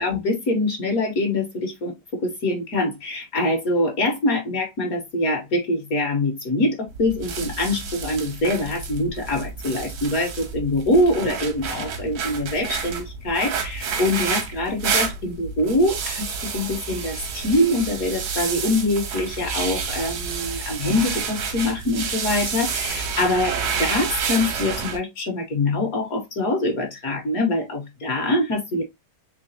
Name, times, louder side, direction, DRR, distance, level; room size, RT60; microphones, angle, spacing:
voice 1, 0.0-28.8, left 1 dB, 60° left, 1.3 m, -24 dB
sound 1, 6.9-25.0, right 6 dB, 85° right, 1.5 m, -29 dB
3.9 x 3.3 x 2.6 m
omnidirectional pair, 1.9 m